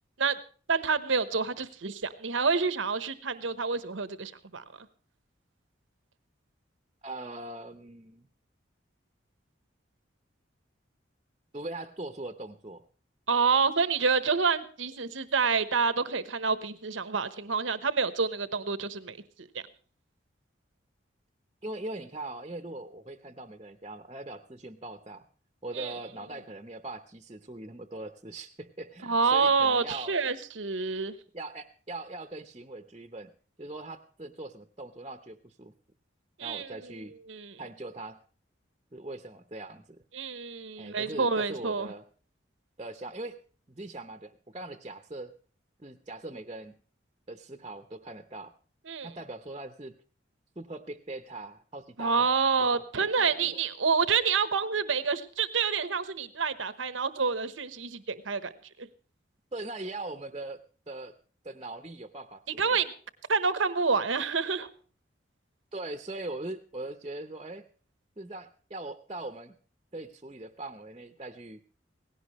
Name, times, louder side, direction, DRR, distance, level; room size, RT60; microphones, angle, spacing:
voice 1, 0.7-4.6 13.3-19.2 25.7-25.9 29.0-31.1 36.4-36.7 37.3-37.5 40.1-41.9 48.9-49.1 52.0-58.5 58.8-58.9 62.6-62.9 63.3-64.7, right 5 dB, 85° right, 13 dB, 1.1 m, -28 dB
voice 2, 7.0-8.3 11.5-12.8 21.6-25.3 25.6-30.1 31.3-33.3 33.6-35.7 36.4-37.1 37.6-38.2 38.9-40.0 40.8-42.0 42.8-43.4 43.7-45.3 45.8-46.8 47.3-48.5 49.0-49.9 50.6-52.3 52.7-53.6 59.5-60.6 60.9-61.1 61.4-62.8 65.7-67.6 68.2-69.5 69.9-71.6, right 2 dB, 25° right, 7 dB, 0.8 m, -41 dB
18.0 x 16.5 x 3.1 m, 0.41 s
head